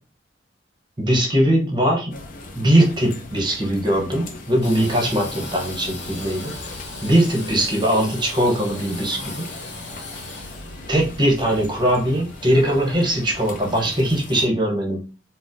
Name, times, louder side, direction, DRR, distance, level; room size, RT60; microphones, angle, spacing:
voice 1, 1.0-2.1 2.6-6.5 7.0-9.5 10.9-15.0, right 1 dB, 25° right, 1 dB, 0.8 m, -20 dB
sound 1, 2.1-14.5, left 2 dB, 45° left, 0.5 m, -39 dB
Engine / Sawing, 4.6-14.1, left 3 dB, 65° left, 1.0 m, -38 dB
4.0 x 2.0 x 2.5 m, 0.34 s
head